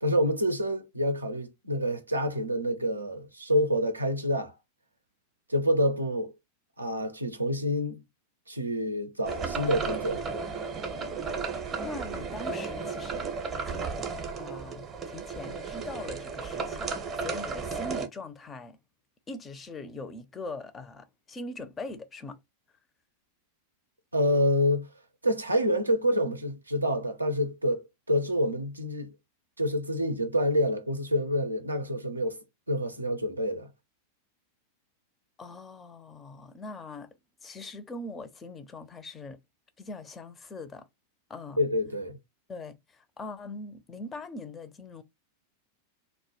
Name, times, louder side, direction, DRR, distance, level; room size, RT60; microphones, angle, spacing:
voice 1, 0.0-4.5 5.5-6.3 6.8-8.0 8.5-10.2 24.1-24.9 25.2-29.1 29.6-32.4 32.7-33.7 41.6-42.2, equal, 80° right, 0.4 m, -27 dB
sound 1, 9.2-18.1, right 4 dB, 25° right, 0.6 m, -34 dB
voice 2, 11.8-13.2 13.5-14.0 14.4-18.8 19.3-22.4 35.4-37.1 37.4-39.4 39.8-40.9 41.3-41.6 42.5-45.0, left 2 dB, 20° left, 0.4 m, -41 dB
2.1 x 2.0 x 2.9 m
figure-of-eight pair, 90°, 0 cm